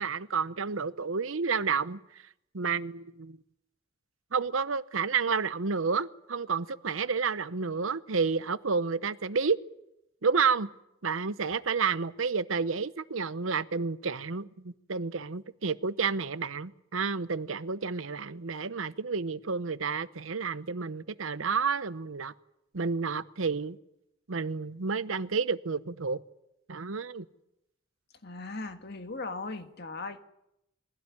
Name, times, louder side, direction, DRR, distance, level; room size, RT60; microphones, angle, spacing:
voice 1, 0.0-2.0 2.5-3.4 4.3-9.6 10.2-10.7 11.0-22.3 22.7-23.8 24.3-26.2 26.7-27.2, right 5 dB, 85° right, 0.9 m, -30 dB
voice 2, 28.2-30.2, left 3 dB, 55° left, 1.8 m, -38 dB
22.5 x 16.5 x 9.7 m
head